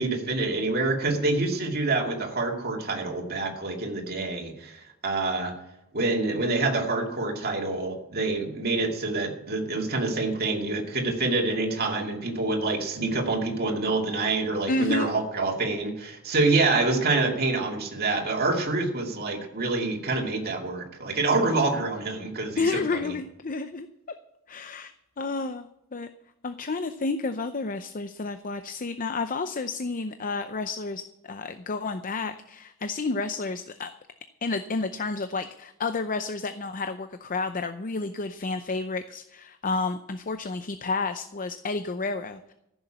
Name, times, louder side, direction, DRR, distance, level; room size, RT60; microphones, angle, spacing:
voice 1, 0.0-5.5 5.9-23.1, right 3 dB, 50° right, 0 dB, 2.4 m, -26 dB
voice 2, 14.7-15.1 22.6-23.9 24.5-26.1 26.4-33.9 34.4-42.5, left 3 dB, 40° left, 9 dB, 0.6 m, -30 dB
15.0 x 7.1 x 8.9 m, 0.87 s
head